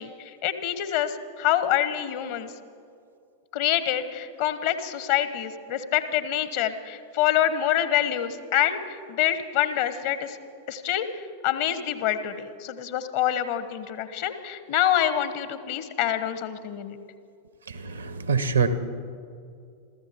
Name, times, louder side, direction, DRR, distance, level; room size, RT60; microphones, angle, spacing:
voice 1, 0.0-2.5 3.5-10.4 10.7-11.1 11.4-17.0, left 11 dB, 50° left, 12 dB, 1.1 m, -26 dB
voice 2, 17.7-18.7, right 5 dB, 75° right, 11 dB, 1.1 m, -25 dB
26.5 x 14.5 x 3.6 m, 2.4 s
figure-of-eight pair, 90°, 0 cm